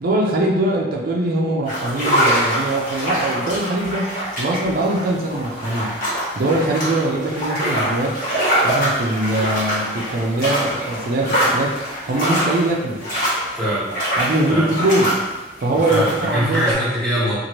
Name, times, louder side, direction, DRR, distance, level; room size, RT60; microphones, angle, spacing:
voice 1, 0.0-6.0 6.4-8.2 8.6-13.0 14.2-15.1 15.6-16.7, right 1 dB, 50° right, -1 dB, 0.5 m, -22 dB
sound 1, 1.6-16.7, equal, 50° left, 1.2 m, -24 dB
voice 2, 13.5-13.9 14.5-14.7 15.7-17.3, equal, 5° left, -11 dB, 1.1 m, -22 dB
2.8 x 2.5 x 3.0 m, 1.1 s
head